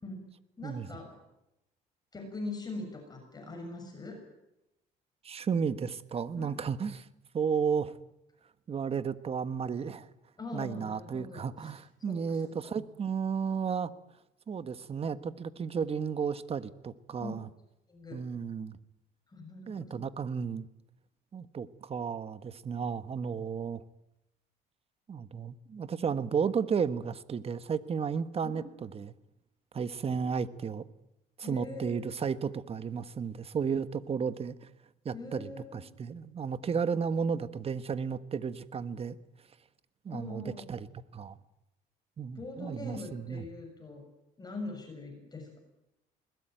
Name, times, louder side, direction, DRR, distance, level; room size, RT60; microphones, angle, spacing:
voice 1, 0.6-1.1 2.1-4.2 6.4-6.5 10.4-11.8 12.1-12.8 17.2-17.4 17.9-18.2 19.3-20.0 28.4-28.7 31.4-32.0 35.1-35.8 40.1-40.8 42.4-44.0 44.4-45.6, left 2 dB, 25° left, 3 dB, 7.0 m, -42 dB
voice 2, 5.2-7.1 7.3-7.9 8.7-10.1 10.5-13.9 14.5-17.5 18.1-18.8 19.7-20.7 21.3-23.8 25.1-29.1 29.7-30.8 31.4-34.6 35.0-39.2 40.0-40.9 41.1-41.3 42.2-43.4, right 6 dB, 35° right, 13 dB, 1.4 m, -33 dB
21.5 x 20.0 x 9.1 m, 0.90 s
cardioid pair, 110°, 17 cm